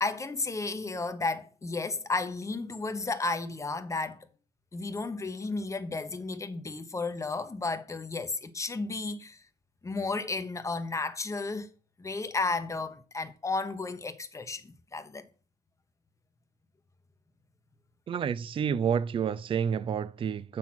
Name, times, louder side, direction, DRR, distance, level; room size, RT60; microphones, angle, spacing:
voice 1, 0.0-4.3 4.7-9.4 9.8-11.7 12.0-15.3, left 3 dB, 20° left, 0.9 m, -33 dB
voice 2, 18.1-20.6, right 7 dB, 30° right, 0.4 m, -29 dB
7.2 x 6.2 x 5.9 m
cardioid pair, 110°, 17 cm